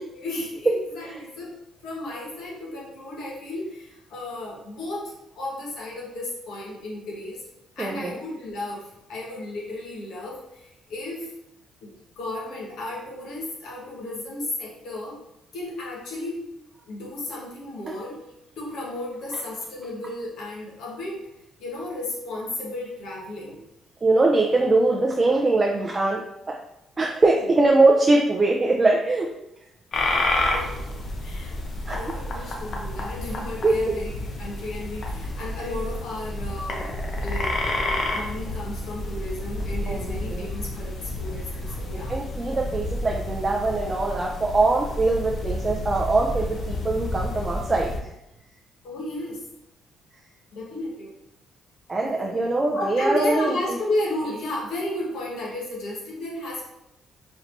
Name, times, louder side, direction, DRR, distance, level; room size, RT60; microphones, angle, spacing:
voice 1, 0.0-1.5 1.8-7.4 7.8-11.3 11.8-15.2 15.5-16.5 16.8-18.2 18.6-21.3 21.6-23.6 30.5-30.8 31.2-31.6 31.9-36.9 37.2-42.1 48.8-49.4 50.5-51.1 52.0-52.4 52.7-56.6, left 1 dB, 85° left, -4 dB, 1.3 m, -33 dB
voice 2, 7.8-8.2 24.0-26.2 27.0-29.3 31.9-32.0 33.6-33.7 39.9-40.5 41.9-47.9 51.9-53.8, right 2 dB, 25° right, -1 dB, 0.4 m, -22 dB
sound 1, 29.9-48.0, left 2 dB, 55° left, 0.7 m, -30 dB
4.2 x 3.2 x 2.6 m, 0.87 s
cardioid pair, 90°, 0 cm